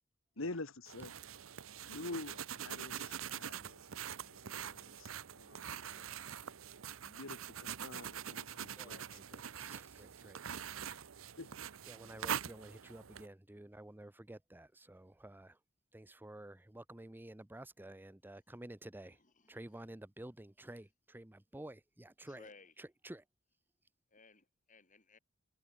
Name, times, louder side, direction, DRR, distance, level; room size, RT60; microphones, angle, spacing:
voice 1, 0.4-1.1 1.8-6.1 7.0-9.2 10.8-10.9 11.4-11.6, left 2 dB, 70° left, 1.8 m, -47 dB
sound 1, 0.9-13.3, right 8 dB, 75° right, 0.8 m, -44 dB
voice 2, 8.8-10.4 11.9-15.6 15.9-19.2 19.5-22.5 22.8-23.3, right 1 dB, 10° right, 0.7 m, -51 dB
voice 3, 19.2-19.6 22.2-22.7 24.1-25.2, left 3 dB, 40° left, 4.8 m, -60 dB
head